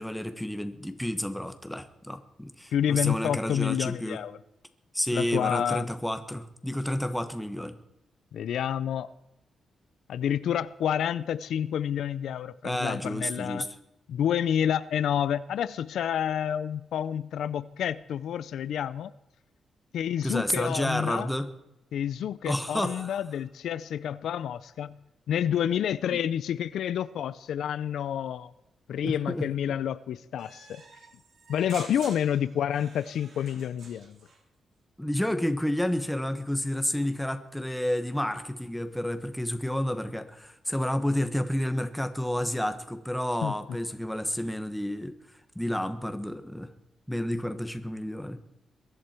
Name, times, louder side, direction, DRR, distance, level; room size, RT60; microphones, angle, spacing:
voice 1, 0.0-4.2 4.9-7.7 12.6-13.7 20.2-21.5 22.4-23.2 26.1-26.2 29.0-29.5 35.0-45.1 45.5-46.7 47.1-48.4, left 1 dB, 5° left, 1.4 m, -30 dB
voice 2, 2.7-4.4 5.1-5.9 8.3-9.1 10.1-13.7 14.1-19.1 19.9-21.3 21.9-25.0 25.3-28.5 28.9-30.8 31.5-34.2 43.4-43.5, left 9 dB, 85° left, 0.5 m, -29 dB
sound 1, 30.4-34.4, right 4 dB, 65° right, 3.6 m, -48 dB
22.0 x 11.0 x 4.5 m
cardioid pair, 105°, 0 cm